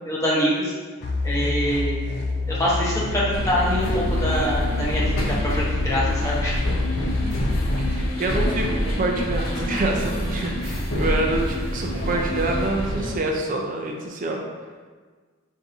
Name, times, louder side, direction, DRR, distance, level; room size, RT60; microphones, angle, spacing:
voice 1, 0.1-0.7 1.2-2.0 2.5-5.0 5.4-6.6, equal, 15° left, -6 dB, 0.8 m, -24 dB
sound 1, 1.0-8.0, left 3 dB, 50° left, 0.3 m, -27 dB
sound 2, 3.3-13.1, equal, 75° left, 0.7 m, -26 dB
voice 2, 7.8-14.4, right 2 dB, 40° right, 1 dB, 0.4 m, -26 dB
5.9 x 2.6 x 2.5 m, 1.5 s
head